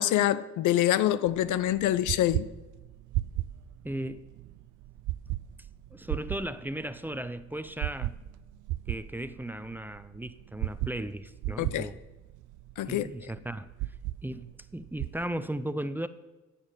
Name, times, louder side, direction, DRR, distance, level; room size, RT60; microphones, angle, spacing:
voice 1, 0.0-2.5 11.6-11.9 12.8-13.1, left 13 dB, 80° left, 0.6 m, -25 dB
sound 1, 1.3-15.2, right 16 dB, 80° right, 0.5 m, -37 dB
voice 2, 3.8-4.3 5.9-8.2 8.9-12.0 12.9-13.7 14.2-14.5 14.7-16.1, right 1 dB, 5° right, 0.6 m, -36 dB
11.0 x 7.5 x 8.9 m
cardioid pair, 90°, 30 cm